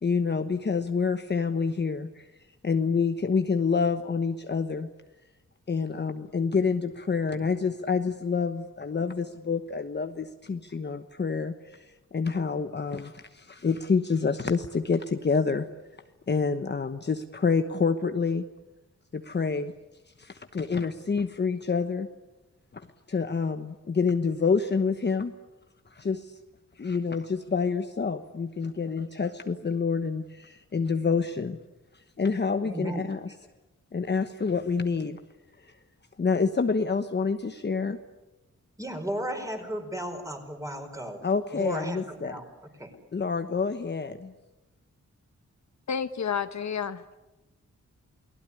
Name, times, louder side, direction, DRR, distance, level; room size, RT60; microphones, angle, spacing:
voice 1, 0.0-2.2 2.6-4.9 5.7-11.5 12.1-15.7 16.3-18.4 19.1-19.7 20.2-22.1 23.1-25.3 25.9-26.3 26.8-31.6 32.2-33.2 33.9-35.2 36.2-38.0 41.2-42.4 43.1-44.3, left 5 dB, 35° left, 7 dB, 1.2 m, -27 dB
voice 2, 32.6-33.4 38.8-41.3 41.5-42.4 42.8-42.9, right 1 dB, 10° right, 4 dB, 4.8 m, -35 dB
voice 3, 45.9-47.2, left 7 dB, 65° left, 10 dB, 1.2 m, -30 dB
29.0 x 20.0 x 9.9 m, 1.0 s
wide cardioid pair, 140°, 29 cm